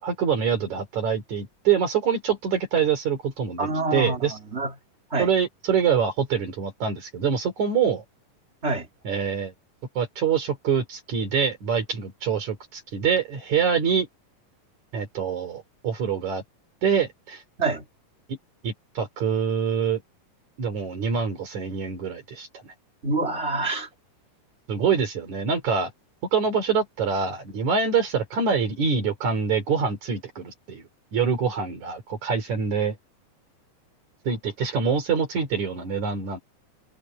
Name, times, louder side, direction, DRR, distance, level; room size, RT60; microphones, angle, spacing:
voice 1, 0.0-4.3 5.2-8.0 9.0-9.5 10.0-14.1 14.9-16.4 16.8-17.4 18.3-18.4 18.6-20.0 20.6-22.7 24.7-25.9 26.3-32.9 34.3-36.4, right 6 dB, 60° right, 4.1 m, -25 dB
voice 2, 3.6-4.7 5.1-5.3 8.6-8.9 17.6-17.8 23.0-23.9, right 3 dB, 20° right, 2.2 m, -26 dB
omnidirectional pair, 3.9 m